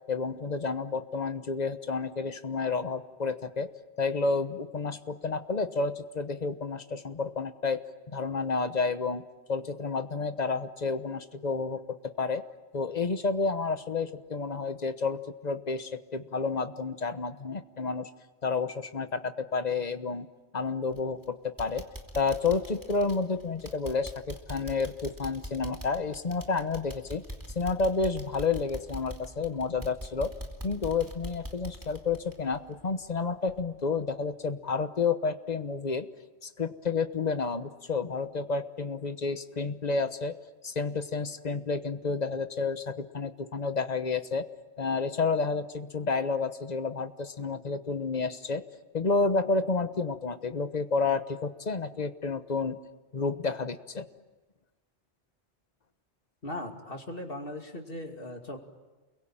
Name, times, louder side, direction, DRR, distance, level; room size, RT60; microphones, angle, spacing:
voice 1, 0.1-3.7 4.0-9.2 9.5-12.4 12.7-18.1 18.4-20.3 20.5-21.9 22.1-27.2 27.5-30.3 30.6-36.1 36.4-40.4 40.6-44.5 44.8-48.6 48.9-52.8 53.1-54.1, left 4 dB, 40° left, 10 dB, 1.2 m, -30 dB
sound 1, 20.9-21.2 21.6-33.2 33.5-33.6 34.1-34.2, equal, 15° right, 2.7 m, -43 dB
voice 2, 56.4-58.6, left 1 dB, 55° left, 3 dB, 2.8 m, -38 dB
29.0 x 22.5 x 9.0 m, 1.2 s
omnidirectional pair, 1.1 m